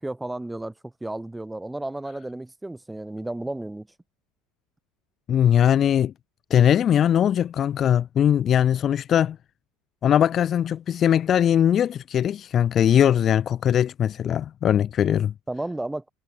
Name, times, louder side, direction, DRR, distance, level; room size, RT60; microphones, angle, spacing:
voice 1, 0.0-3.9 15.5-16.0, right 2 dB, 5° right, 5.7 m, -33 dB
voice 2, 5.3-6.1 6.5-9.4 10.0-15.3, left 9 dB, 35° left, 1.4 m, -20 dB
supercardioid pair, 130°, 0 cm